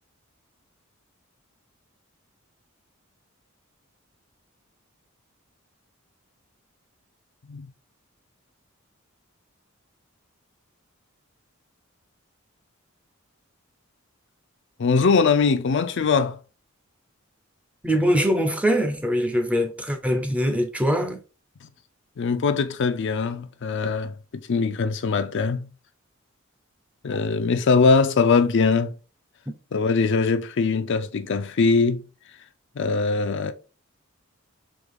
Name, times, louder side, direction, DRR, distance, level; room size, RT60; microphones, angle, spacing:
voice 1, 14.8-16.4 22.2-24.2 24.5-25.7 27.0-28.9 29.7-32.0 32.8-33.5, left 4 dB, 60° left, 0.4 m, -21 dB
voice 2, 17.8-21.2, equal, 5° right, 0.5 m, -22 dB
3.7 x 3.2 x 3.5 m
head